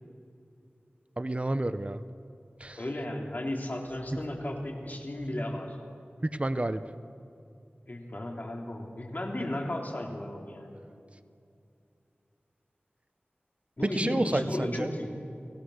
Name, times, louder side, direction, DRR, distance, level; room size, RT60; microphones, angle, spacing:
voice 1, 1.2-2.0 2.6-2.8 4.1-4.2 6.2-6.8 13.8-14.9, right 1 dB, 35° right, 11 dB, 0.9 m, -29 dB
voice 2, 2.8-5.8 7.9-10.8 13.8-15.1, left 1 dB, 50° left, 1 dB, 3.5 m, -34 dB
29.5 x 18.5 x 6.6 m, 2.6 s
wide cardioid pair, 60°, 4 cm